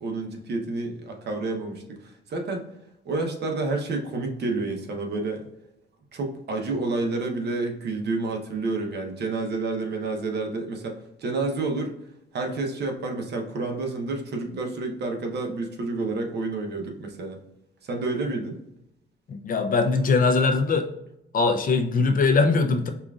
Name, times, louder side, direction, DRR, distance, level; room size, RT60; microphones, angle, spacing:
voice 1, 0.0-2.6 3.0-5.5 6.1-12.0 12.3-17.4 17.8-18.6, right 3 dB, 55° right, 3 dB, 0.8 m, -29 dB
voice 2, 19.3-20.9 21.3-22.9, left 4 dB, 45° left, 6 dB, 0.5 m, -21 dB
5.4 x 2.4 x 2.4 m, 0.85 s
cardioid pair, 90°, 20 cm